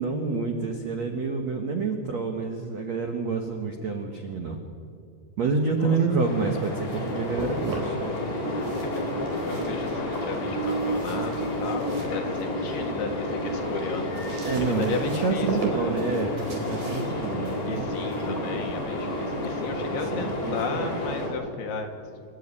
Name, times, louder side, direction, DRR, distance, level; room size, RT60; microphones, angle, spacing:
voice 1, 0.0-4.6 5.4-8.0 14.4-17.9 19.9-20.9, right 4 dB, 85° right, 4 dB, 1.5 m, -28 dB
voice 2, 5.8-6.2 8.5-14.3 14.6-16.2 17.6-21.9, left 5 dB, 60° left, 3 dB, 3.2 m, -35 dB
sound 1, 6.2-21.3, left 1 dB, 40° left, 6.1 m, -30 dB
sound 2, 6.4-8.2 8.5-12.9 13.3-19.9, right 2 dB, 40° right, 5.0 m, -38 dB
28.0 x 13.5 x 9.9 m, 2.4 s
omnidirectional pair, 5.9 m